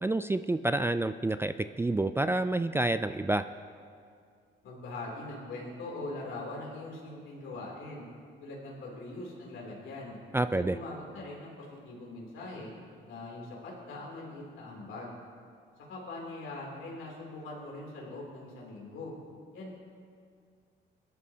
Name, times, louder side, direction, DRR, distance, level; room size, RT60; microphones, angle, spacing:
voice 1, 0.0-3.4 10.3-10.8, right 2 dB, 10° right, 11 dB, 0.3 m, -28 dB
voice 2, 4.6-8.0 8.4-10.2 10.5-12.7 13.0-15.2 15.9-19.1 19.5-19.8, left 2 dB, 80° left, -3 dB, 3.1 m, -42 dB
20.5 x 11.5 x 2.8 m, 2.2 s
cardioid pair, 90°, 20 cm